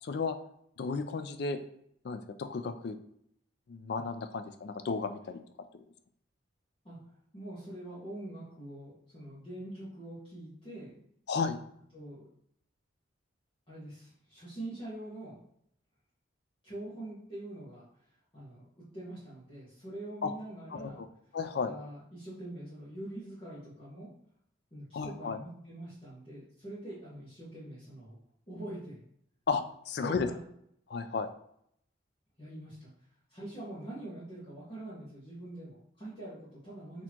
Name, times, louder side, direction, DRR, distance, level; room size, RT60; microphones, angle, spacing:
voice 1, 0.0-0.4 0.8-1.6 2.0-3.0 3.7-5.4 5.7-5.8 11.3-11.6 20.2-20.3 20.7-21.1 21.3-21.7 24.9-25.4 29.5-30.3 30.9-31.3, left 4 dB, 55° left, 9 dB, 0.3 m, -33 dB
voice 2, 7.3-11.0 11.9-12.3 13.7-15.4 16.6-17.8 18.3-18.7 18.9-21.0 21.6-24.1 24.7-28.2 28.5-29.0 30.0-30.4 32.4-32.9 33.3-37.0, right 1 dB, 25° left, -11 dB, 1.1 m, -44 dB
4.1 x 2.9 x 2.9 m, 0.70 s
head